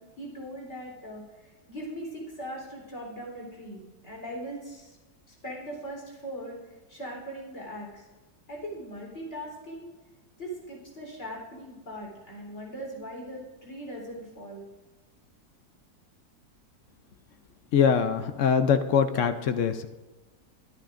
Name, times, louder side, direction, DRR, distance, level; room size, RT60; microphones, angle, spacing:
voice 1, 0.0-5.0 5.3-8.1 8.5-9.9 10.4-14.6, equal, 45° left, -2 dB, 4.0 m, -40 dB
voice 2, 17.7-19.9, left 7 dB, 60° left, 9 dB, 0.9 m, -23 dB
23.5 x 9.9 x 2.5 m, 1.2 s
omnidirectional pair, 1.7 m